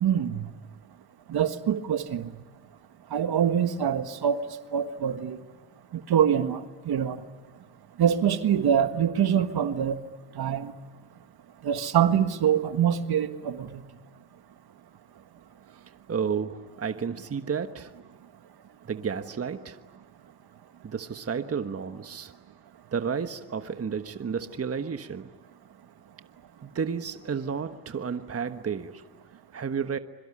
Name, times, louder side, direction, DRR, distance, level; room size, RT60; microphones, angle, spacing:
voice 1, 0.0-0.4 1.3-2.3 3.1-4.4 4.7-5.4 6.1-6.6 6.9-7.2 8.0-10.0 10.4-10.7 11.6-13.7, right 9 dB, 60° right, 9 dB, 1.7 m, -24 dB
voice 2, 16.1-17.9 18.9-19.8 20.8-22.3 22.9-25.3 26.6-29.0 29.5-30.0, right 6 dB, 35° right, 9 dB, 1.4 m, -31 dB
25.5 x 23.5 x 9.9 m, 1.3 s
supercardioid pair, 75°, 44 cm